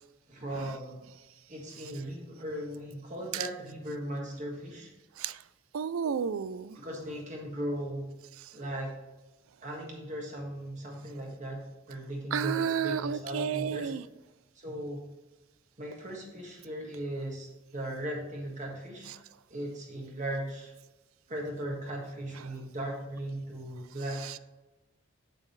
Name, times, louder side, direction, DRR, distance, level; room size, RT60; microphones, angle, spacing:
voice 1, 0.3-1.0 1.5-4.9 6.7-8.1 8.5-9.0 9.6-13.9 14.5-15.0 15.8-19.1 19.5-20.7 21.3-24.4, right 1 dB, 35° right, -1 dB, 1.6 m, -38 dB
voice 2, 5.7-6.8 12.3-14.0, right 7 dB, 75° right, 16 dB, 0.4 m, -31 dB
7.6 x 7.4 x 3.2 m, 1.1 s
head